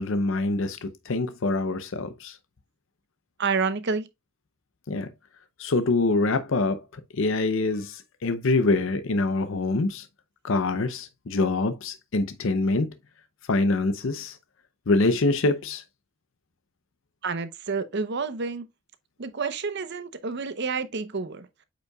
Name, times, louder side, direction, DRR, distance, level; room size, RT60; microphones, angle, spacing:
voice 1, 0.0-2.4 4.9-5.1 5.6-10.1 10.4-12.9 13.5-14.4 14.9-15.8, left 3 dB, 60° left, 0.6 m, -25 dB
voice 2, 3.4-4.1 17.2-18.7 19.2-21.5, right 4 dB, 50° right, 0.8 m, -29 dB
8.4 x 5.3 x 2.3 m
head